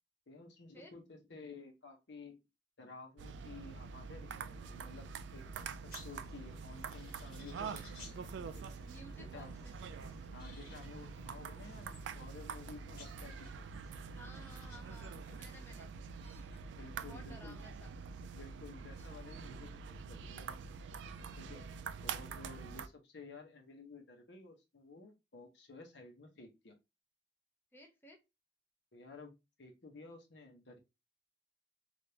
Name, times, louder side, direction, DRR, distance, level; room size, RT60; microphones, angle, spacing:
voice 1, 0.3-2.4 2.8-8.7 9.2-9.5 10.3-13.7 16.8-17.6 18.3-20.6 21.4-21.6 22.0-26.7 28.9-29.3 29.6-30.8, left 3 dB, 75° left, 3 dB, 0.8 m, -53 dB
sound 1, 3.2-22.9, right 5 dB, 85° right, 0.3 m, -46 dB
sound 2, 5.3-15.6, left 3 dB, 55° left, 1.5 m, -60 dB
voice 2, 8.9-9.9 12.0-12.4 14.1-15.9 17.1-18.0 27.7-28.2, equal, 15° left, 2 dB, 0.7 m, -56 dB
sound 3, 16.1-16.7 18.0-18.1 18.6-18.7 19.0-19.2 21.1-21.5 21.9-22.0, right 2 dB, 15° right, 1.5 m, -67 dB
3.4 x 2.5 x 2.7 m, 0.24 s
head